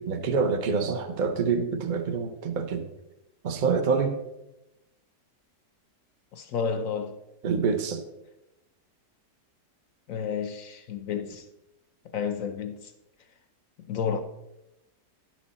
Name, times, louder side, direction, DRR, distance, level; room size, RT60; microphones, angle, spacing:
voice 1, 0.0-2.9 3.4-4.2 7.4-8.0, right 5 dB, 50° right, 0.6 m, -26 dB
voice 2, 6.3-7.2 10.1-11.5 12.1-12.9 13.9-14.2, left 6 dB, 65° left, 0.9 m, -31 dB
11.0 x 6.1 x 4.1 m
omnidirectional pair, 1.8 m